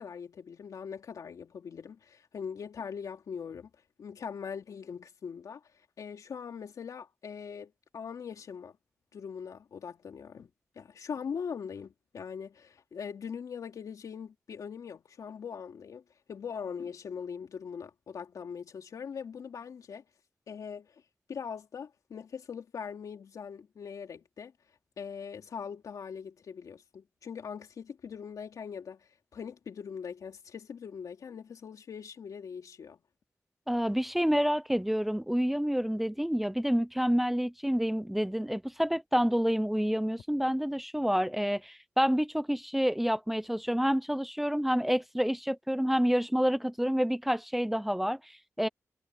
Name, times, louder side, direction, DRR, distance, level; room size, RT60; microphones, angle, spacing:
voice 1, 0.0-3.7 4.0-5.6 6.0-8.8 9.1-10.5 10.7-16.0 16.3-20.0 20.5-21.0 21.3-24.5 25.0-33.0, left 6 dB, 85° left, 3.1 m, -41 dB
voice 2, 33.7-48.7, equal, 5° right, 0.6 m, -28 dB
wide cardioid pair, 175°, 6 cm